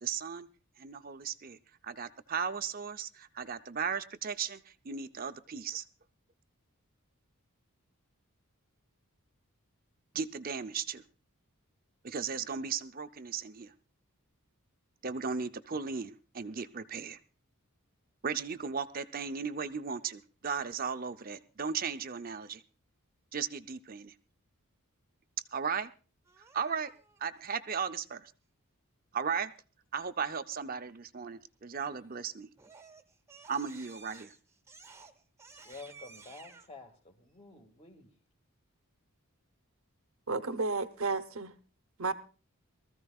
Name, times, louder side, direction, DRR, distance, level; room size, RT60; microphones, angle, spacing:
voice 1, 0.0-0.5 0.8-1.6 1.8-5.8 10.1-11.0 12.0-13.7 15.0-17.2 18.2-22.6 23.3-24.1 25.5-25.9 26.5-26.9 27.2-28.3 29.1-29.5 29.9-32.5 33.5-34.3, right 6 dB, 40° right, 0.6 m, -36 dB
Crying sobbing, 26.3-27.2 31.9-32.2 32.6-36.7, right 4 dB, 10° right, 1.0 m, -54 dB
voice 2, 35.6-38.1, left 3 dB, 30° left, 1.9 m, -50 dB
voice 3, 40.3-41.5 42.0-42.1, right 3 dB, 70° right, 0.8 m, -32 dB
23.5 x 14.5 x 2.4 m
head